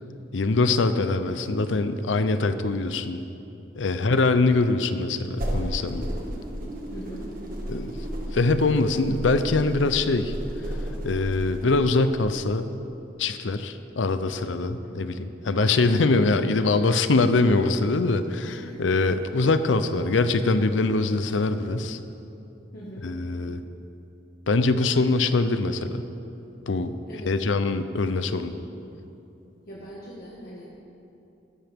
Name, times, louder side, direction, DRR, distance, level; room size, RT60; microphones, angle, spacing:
voice 1, 0.3-3.2 3.8-6.1 7.7-8.0 8.3-10.3 11.0-12.7 13.2-22.0 23.0-23.6 24.5-26.0 26.7-27.0 27.3-28.6, left 3 dB, 90° left, 10 dB, 0.6 m, -23 dB
voice 2, 3.9-4.2 6.9-7.3 14.8-15.0 18.5-19.0 22.7-23.1 27.1-27.4 29.7-30.8, right 1 dB, 55° left, -6 dB, 1.7 m, -42 dB
sound 1, 5.3-11.8, equal, 50° right, 1.8 m, -33 dB
16.0 x 13.0 x 3.6 m, 2.8 s
head